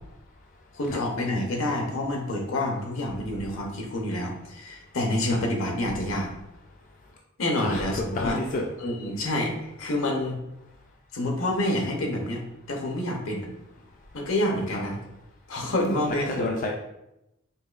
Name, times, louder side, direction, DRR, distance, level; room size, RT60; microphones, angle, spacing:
voice 1, 0.7-6.3 7.4-8.4 8.8-10.4 11.1-12.4 12.7-13.5 14.1-15.0 15.5-16.5, left 1 dB, 75° left, 1 dB, 0.8 m, -28 dB
voice 2, 7.6-8.6 14.7-14.8 16.4-16.7, left 2 dB, 40° left, 0 dB, 0.3 m, -29 dB
5.3 x 2.2 x 2.4 m, 0.87 s
head